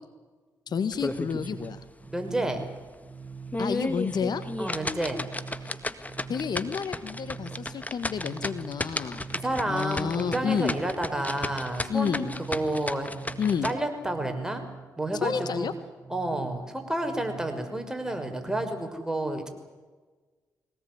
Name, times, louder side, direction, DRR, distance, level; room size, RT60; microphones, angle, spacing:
voice 1, 0.7-1.8 3.6-4.4 5.6-5.8 6.3-9.3 9.7-10.7 11.9-12.3 13.4-13.7 15.1-15.7, left 6 dB, 55° left, 11 dB, 1.5 m, -30 dB
sound 1, 0.7-18.9, right 5 dB, 45° right, 4.7 m, -44 dB
sound 2, 0.9-1.7 2.0-2.1 2.6-2.7 3.3-13.7, left 2 dB, 20° left, 1.8 m, -34 dB
voice 2, 2.1-2.7 4.6-5.2 9.3-13.1 13.6-14.7 15.0-15.7 16.1-19.5, right 1 dB, 5° right, 5 dB, 5.8 m, -30 dB
23.0 x 18.5 x 9.7 m, 1.3 s
hypercardioid pair, 40°, 8 cm